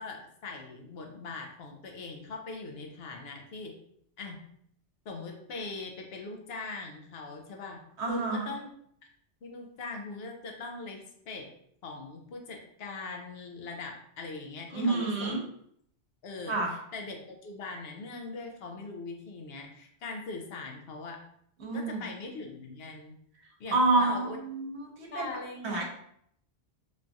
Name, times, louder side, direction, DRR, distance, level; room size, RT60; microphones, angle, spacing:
voice 1, 0.0-3.7 4.2-4.4 5.0-8.7 9.4-11.5 11.8-15.4 16.2-21.2 21.7-23.2 23.6-24.4 25.1-25.8, left 3 dB, 70° left, 2 dB, 0.8 m, -41 dB
voice 2, 8.0-8.5 14.7-15.4 16.5-16.7 21.6-22.1 23.7-25.3 25.6-25.8, right 3 dB, 90° right, 0 dB, 1.0 m, -28 dB
3.1 x 2.3 x 2.6 m, 0.69 s
omnidirectional pair, 1.1 m